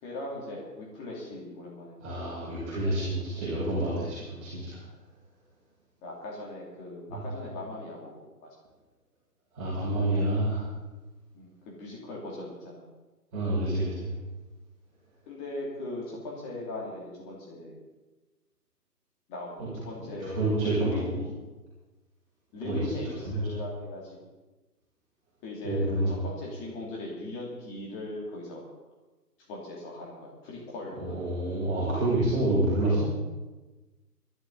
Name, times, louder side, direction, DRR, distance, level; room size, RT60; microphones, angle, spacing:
voice 1, 0.0-2.1 6.0-8.5 11.3-12.8 15.3-17.8 19.3-21.3 22.5-24.2 25.4-28.7 29.5-31.2, left 2 dB, 15° left, -3 dB, 2.7 m, -39 dB
voice 2, 2.0-4.8 7.1-7.2 9.5-10.6 13.3-14.1 19.6-19.7 20.0-21.1 22.6-22.8 23.2-23.4 25.6-26.1 31.0-33.0, right 1 dB, 20° right, -10 dB, 6.1 m, -28 dB
22.5 x 12.5 x 4.0 m, 1.2 s
figure-of-eight pair, 145°, 48 cm